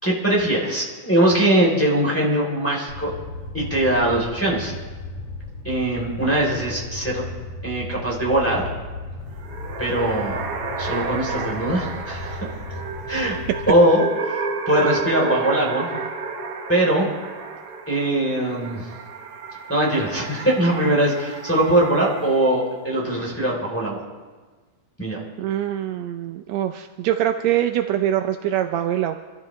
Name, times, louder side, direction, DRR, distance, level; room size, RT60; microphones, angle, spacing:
voice 1, 0.0-3.1 3.5-4.7 5.6-7.2 7.6-8.7 9.8-10.4 10.8-12.4 13.1-13.4 13.7-15.9 16.7-17.1 17.9-18.9 19.7-24.0 25.0-25.2, right 1 dB, 5° left, -3 dB, 2.9 m, -21 dB
Fire, 2.9-13.7, left 2 dB, 85° left, 4.4 m, -35 dB
sound 1, 9.3-22.7, right 4 dB, 60° right, 1.8 m, -31 dB
voice 2, 25.4-29.2, right 11 dB, 80° right, 6 dB, 1.5 m, -23 dB
26.5 x 13.5 x 3.2 m, 1.4 s
omnidirectional pair, 3.7 m